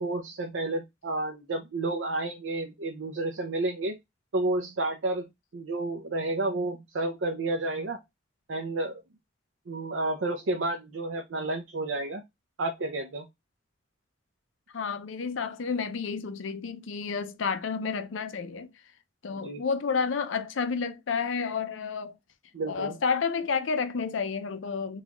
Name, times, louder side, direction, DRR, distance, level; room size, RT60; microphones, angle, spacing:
voice 1, 0.0-4.0 4.3-5.2 5.5-8.0 8.5-9.0 9.7-12.2 12.6-13.3 19.3-19.6 22.5-23.0, right 2 dB, 80° right, 0.6 m, -31 dB
voice 2, 14.7-18.7 19.2-22.2 22.7-25.0, left 5 dB, 90° left, 0.5 m, -30 dB
4.0 x 2.4 x 2.9 m
head